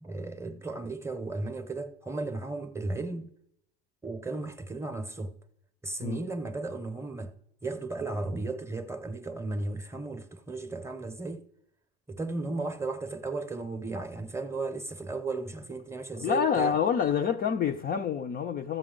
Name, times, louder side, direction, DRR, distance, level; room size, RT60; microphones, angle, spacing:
voice 1, 0.0-3.3 4.0-5.4 5.8-7.3 7.6-11.5 12.1-16.8, right 3 dB, 10° right, 0.7 m, -35 dB
voice 2, 16.2-18.8, left 7 dB, 30° left, 0.4 m, -27 dB
13.5 x 7.7 x 3.8 m
supercardioid pair, 125°, 34 cm